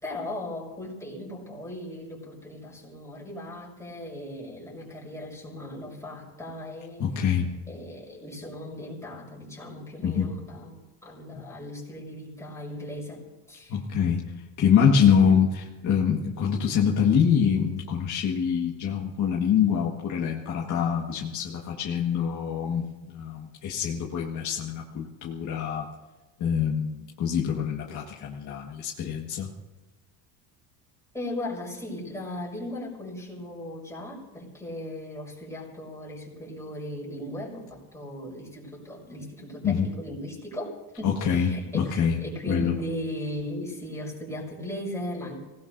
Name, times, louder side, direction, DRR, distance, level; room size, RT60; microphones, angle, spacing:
voice 1, 0.0-7.3 7.7-13.8 15.1-15.3 31.1-45.4, left 1 dB, 5° left, -4 dB, 6.1 m, -37 dB
voice 2, 7.0-7.5 10.0-10.3 13.7-14.3 14.6-25.9 26.4-29.5 39.6-39.9 41.0-42.2 42.5-42.8, left 7 dB, 45° left, -2 dB, 1.7 m, -25 dB
25.5 x 18.5 x 2.7 m, 1.1 s
cardioid pair, 135°, 43 cm